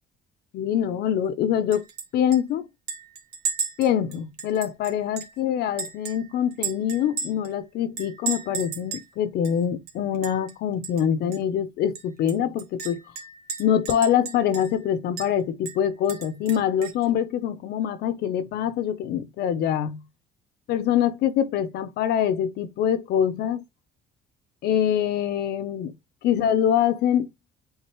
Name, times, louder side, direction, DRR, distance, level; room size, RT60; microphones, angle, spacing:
voice 1, 0.5-1.8 2.1-2.7 3.8-13.0 13.6-20.0 20.7-23.6 24.6-25.9 26.2-27.3, left 9 dB, 75° left, 0.8 m, -24 dB
Chink clink, 1.7-2.1 2.3-2.4 2.9-5.4 5.8-7.5 8.0-9.1 9.4-9.5 9.9-10.5 10.8-11.0 11.3-11.4 12.0-14.8 15.2-15.3 15.7-17.0, right 6 dB, 70° right, 1.9 m, -34 dB
8.1 x 4.0 x 3.0 m
cardioid pair, 110°, 17 cm